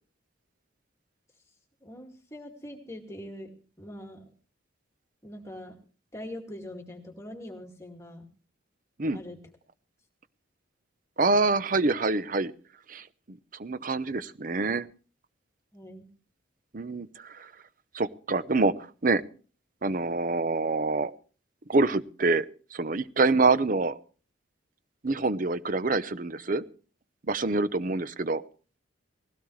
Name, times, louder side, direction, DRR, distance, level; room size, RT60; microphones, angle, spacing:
voice 1, 1.8-3.5 3.8-4.2 5.2-5.8 6.1-8.3 9.1-9.4 15.7-16.1, left 1 dB, 15° left, 2 dB, 2.2 m, -42 dB
voice 2, 11.2-12.5 12.9-14.9 16.7-17.5 17.9-18.7 19.0-19.2 19.8-21.1 21.7-22.5 22.7-24.0 25.0-26.6 27.3-28.4, right 3 dB, 40° right, 14 dB, 0.7 m, -26 dB
19.5 x 16.5 x 3.2 m, 0.38 s
head